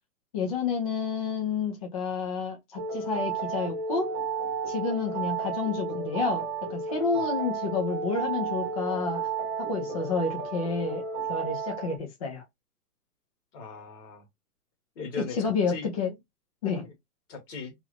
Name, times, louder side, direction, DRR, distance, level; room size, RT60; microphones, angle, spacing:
voice 1, 0.3-4.2 4.7-9.2 9.6-11.0 11.3-12.4 15.2-16.1 16.6-16.9, left 5 dB, 25° left, 0.4 m, -30 dB
sound 1, 2.8-12.0, right 5 dB, 20° right, 0.9 m, -32 dB
voice 2, 13.5-14.2 14.9-15.9 17.3-17.7, left 4 dB, 50° left, 1.6 m, -39 dB
3.0 x 2.5 x 3.2 m
hypercardioid pair, 135°, 48 cm